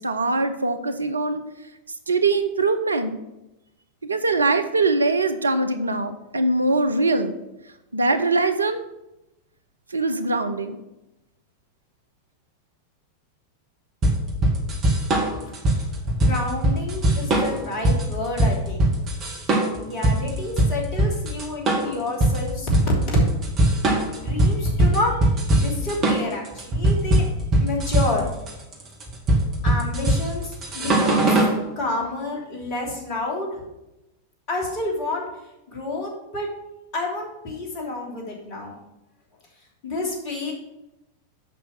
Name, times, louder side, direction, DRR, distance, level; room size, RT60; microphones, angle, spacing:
voice 1, 0.0-1.4 2.1-3.2 4.0-7.4 7.9-8.8 9.9-10.8, right 3 dB, 75° right, 10 dB, 0.7 m, -22 dB
sound 1, 14.0-31.6, right 1 dB, 30° right, 2.3 m, -21 dB
voice 2, 16.2-18.9 19.8-23.2 24.2-25.2 25.6-27.3 27.6-28.2 29.6-31.4 31.8-33.6 34.5-35.2 35.7-36.5 36.9-38.7 39.8-40.5, left 2 dB, 40° left, -1 dB, 3.1 m, -29 dB
8.1 x 5.8 x 6.1 m, 0.94 s
figure-of-eight pair, 90°, 0 cm